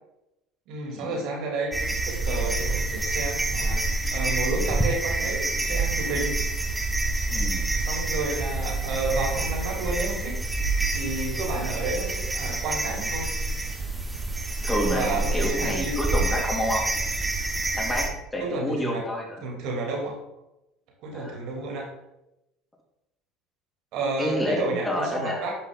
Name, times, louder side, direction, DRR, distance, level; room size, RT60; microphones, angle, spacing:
voice 1, 0.7-1.8 2.0-6.4 7.8-10.4 10.9-13.3 14.5-15.9 18.4-19.0 19.4-20.2 21.0-21.9 23.9-25.6, right 3 dB, 65° right, -1 dB, 3.1 m, -31 dB
sound 1, 1.7-18.1, right 2 dB, 10° right, 1.4 m, -27 dB
voice 2, 7.3-7.7 14.6-16.8 17.7-18.1 18.3-19.4 21.1-21.4 24.2-25.5, equal, 15° left, -2 dB, 2.8 m, -28 dB
10.0 x 5.6 x 3.8 m, 0.91 s
hypercardioid pair, 75°, 0 cm